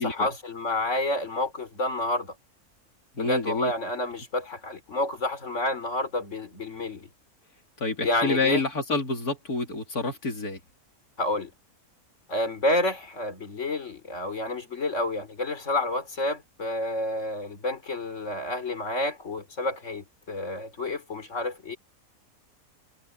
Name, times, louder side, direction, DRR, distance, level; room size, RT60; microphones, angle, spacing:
voice 1, 0.0-2.3 3.2-7.1 8.0-8.6 11.2-11.5 12.3-21.8, left 2 dB, 50° left, 3.9 m, -29 dB
voice 2, 3.2-3.7 7.8-10.6, left 3 dB, 85° left, 3.6 m, -28 dB
omnidirectional pair, 1.6 m